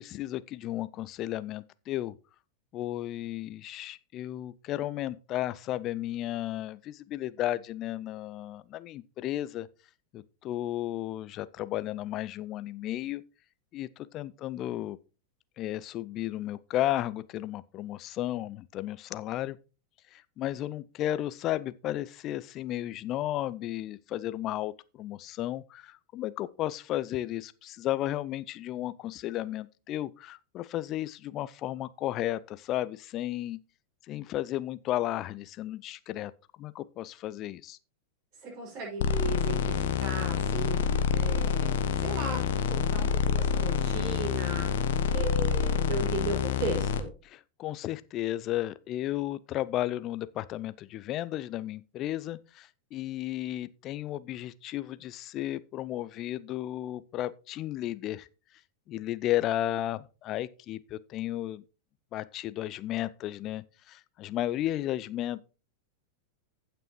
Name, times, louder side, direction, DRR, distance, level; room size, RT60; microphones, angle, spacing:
voice 1, 0.0-2.2 2.7-9.7 10.1-13.2 13.7-15.0 15.6-19.6 20.1-33.6 34.1-36.3 36.6-37.8 47.2-58.3 58.9-61.6 62.1-65.5, left 14 dB, 35° left, 0.5 m, -34 dB
voice 2, 38.4-44.7 45.1-47.1, right 3 dB, 35° right, 6.0 m, -36 dB
sound 1, 39.0-47.0, left 6 dB, 55° left, 1.0 m, -27 dB
15.5 x 6.0 x 3.1 m
figure-of-eight pair, 90°, 0 cm